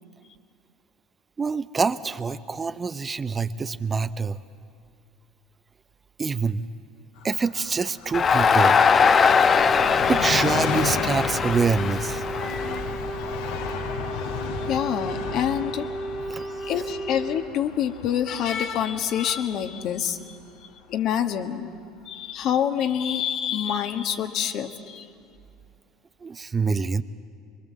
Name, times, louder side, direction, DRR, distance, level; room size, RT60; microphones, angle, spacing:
voice 1, 1.4-4.4 6.2-6.6 7.2-8.8 10.1-12.2 16.3-16.6 26.2-27.0, right 5 dB, 25° right, 12 dB, 0.7 m, -26 dB
Train, 7.2-20.5 20.8-20.9, left 6 dB, 75° left, 1.8 m, -34 dB
Crowd, 8.1-13.3, left 6 dB, 35° left, 1.0 m, -21 dB
Wind instrument woodwind instrument, 8.9-17.5, right 2 dB, 10° right, 1.2 m, -34 dB
voice 2, 14.7-15.9 16.6-20.4 20.9-21.7 22.0-25.1, left 9 dB, 55° left, 6 dB, 1.6 m, -26 dB
24.5 x 22.5 x 7.6 m, 2.3 s
hypercardioid pair, 70°, 0 cm